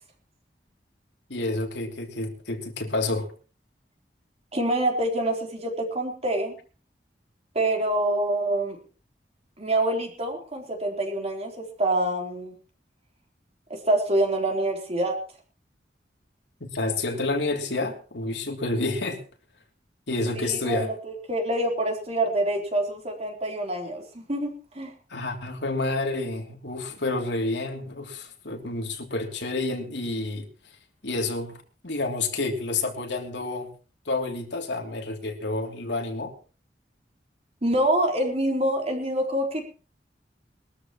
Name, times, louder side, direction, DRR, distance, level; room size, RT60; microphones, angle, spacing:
voice 1, 1.3-3.3 16.6-19.2 20.1-20.9 25.1-30.5 31.0-33.7 34.0-36.3, left 2 dB, 85° left, 3 dB, 3.0 m, -29 dB
voice 2, 4.5-6.5 7.5-8.8 9.6-12.5 13.7-15.2 20.3-24.9 37.6-39.7, right 1 dB, 35° right, 2 dB, 3.8 m, -26 dB
22.0 x 13.0 x 3.1 m, 0.38 s
head